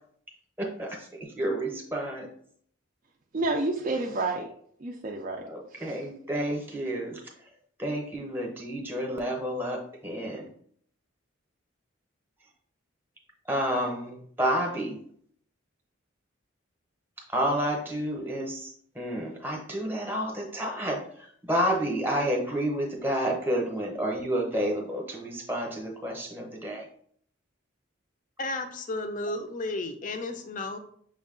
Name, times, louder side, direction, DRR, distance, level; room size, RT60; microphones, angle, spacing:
voice 1, 0.6-2.3 5.4-7.2 7.8-10.5 13.5-15.0 17.3-26.9, equal, 10° right, -1 dB, 0.8 m, -30 dB
voice 2, 3.3-4.5 4.8-5.4 5.7-6.0, right 2 dB, 40° right, 0 dB, 0.4 m, -30 dB
voice 3, 28.4-30.8, left 2 dB, 40° left, 7 dB, 0.4 m, -33 dB
6.1 x 2.2 x 3.7 m, 0.62 s
head